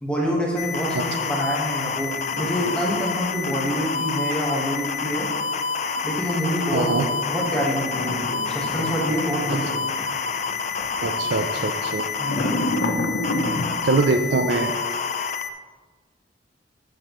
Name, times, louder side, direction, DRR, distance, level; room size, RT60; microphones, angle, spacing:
voice 1, 0.0-5.3 6.0-6.9 7.3-8.2 8.5-9.6 12.2-12.5, equal, 5° left, -3 dB, 1.3 m, -26 dB
sound 1, 0.6-15.5, left 5 dB, 40° left, 0.4 m, -28 dB
sound 2, 2.4-3.8 5.8-11.0 11.3-11.5 12.2-13.8, left 1 dB, 75° left, 0.8 m, -30 dB
voice 2, 6.7-7.1 11.0-12.0 13.8-14.7, right 3 dB, 75° right, 5 dB, 0.5 m, -23 dB
9.6 x 7.5 x 3.0 m, 1.4 s
head